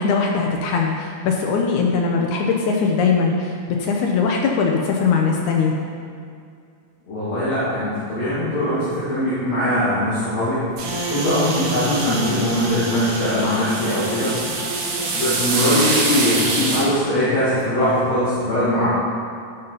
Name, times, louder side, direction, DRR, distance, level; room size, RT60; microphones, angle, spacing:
voice 1, 0.0-5.7, left 5 dB, 75° left, 1 dB, 2.0 m, -20 dB
voice 2, 7.1-10.6 11.1-14.3 15.1-18.9, left 1 dB, 55° left, -13 dB, 3.5 m, -21 dB
sound 1, 10.8-16.9, right 3 dB, 65° right, 2.3 m, -25 dB
Bowed string instrument, 10.8-16.6, right 2 dB, 90° right, 2.7 m, -32 dB
12.0 x 5.4 x 4.0 m, 2.3 s
omnidirectional pair, 3.8 m